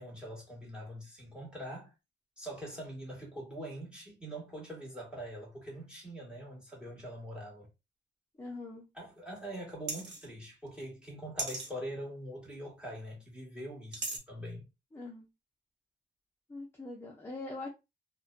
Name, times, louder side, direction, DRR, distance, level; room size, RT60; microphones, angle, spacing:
voice 1, 0.0-1.9 2.4-7.7 8.9-14.7, right 1 dB, 5° right, 1.4 m, -43 dB
voice 2, 8.4-8.8 14.9-15.3 16.5-17.7, left 2 dB, 15° left, 0.6 m, -42 dB
sound 1, 9.9-10.3 11.4-11.7 13.9-14.2, right 3 dB, 80° right, 0.9 m, -36 dB
2.6 x 2.2 x 2.4 m
wide cardioid pair, 115°, 18 cm